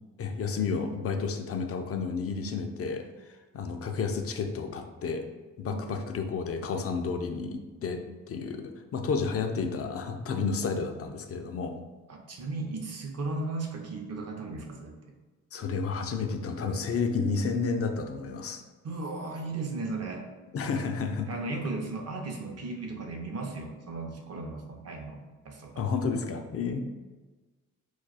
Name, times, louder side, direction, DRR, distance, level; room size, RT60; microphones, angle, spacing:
voice 1, 0.2-3.0 3.5-5.2 5.6-11.7 15.5-18.6 20.5-21.3 25.8-26.8, left 5 dB, 40° left, 5 dB, 0.5 m, -31 dB
voice 2, 5.7-6.0 12.1-15.0 18.8-20.3 21.3-25.9, right 3 dB, 45° right, 3 dB, 0.7 m, -36 dB
2.3 x 2.2 x 4.0 m, 1.3 s
supercardioid pair, 55°, 37 cm